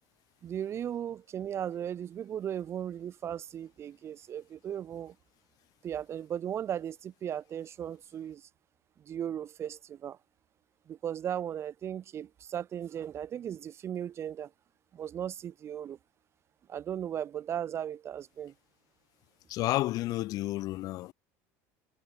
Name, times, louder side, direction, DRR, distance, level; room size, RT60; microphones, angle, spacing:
voice 1, 0.4-5.1 5.8-8.5 9.0-10.2 10.9-14.5 14.9-16.0 16.7-18.5, right 9 dB, 35° right, 2.9 m, -36 dB
voice 2, 19.5-21.1, left 17 dB, 55° left, 3.6 m, -31 dB
cardioid pair, 130°, 7 cm